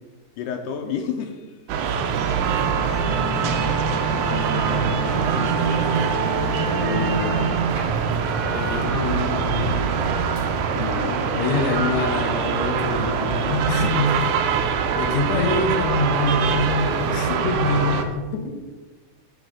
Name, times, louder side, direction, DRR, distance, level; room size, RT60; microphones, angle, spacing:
voice 1, 0.4-1.5 3.9-5.7 6.8-7.6 10.7-11.4 15.3-15.4, left 7 dB, 85° left, 3 dB, 2.1 m, -31 dB
sound 1, 1.7-18.0, right 6 dB, 75° right, 2.0 m, -24 dB
Musical instrument, 2.3-17.8, right 4 dB, 50° right, 2.0 m, -30 dB
voice 2, 8.5-9.9 11.3-14.2 14.5-18.6, left 3 dB, 70° left, 5 dB, 2.0 m, -25 dB
9.2 x 6.2 x 3.7 m, 1.3 s
omnidirectional pair, 3.8 m